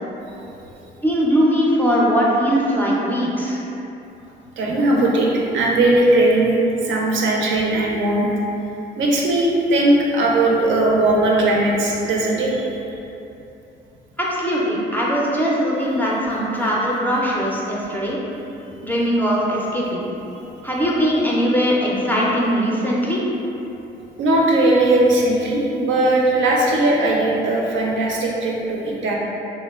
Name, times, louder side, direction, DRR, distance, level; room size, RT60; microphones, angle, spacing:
voice 1, 1.0-3.6 14.4-18.2 18.8-20.0 20.6-23.2, equal, 10° left, -5 dB, 0.4 m, -20 dB
voice 2, 4.6-8.3 9.0-12.7 24.2-29.1, right 2 dB, 70° right, -2 dB, 0.5 m, -18 dB
2.9 x 2.1 x 2.3 m, 2.9 s
cardioid pair, 90°, 20 cm